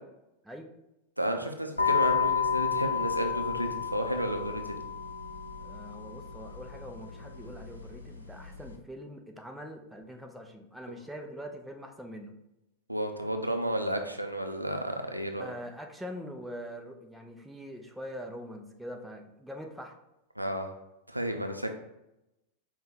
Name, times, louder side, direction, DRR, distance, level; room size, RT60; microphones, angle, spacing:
voice 1, 1.2-4.8 12.9-15.5 20.4-20.7 21.1-21.7, right 1 dB, 85° right, 5 dB, 0.4 m, -32 dB
sound 1, 1.8-8.8, left 6 dB, 85° left, 0.6 m, -32 dB
voice 2, 5.6-12.4 15.4-19.9, equal, 5° right, 3 dB, 0.5 m, -43 dB
5.4 x 2.2 x 4.1 m, 0.91 s
figure-of-eight pair, 90°, 0 cm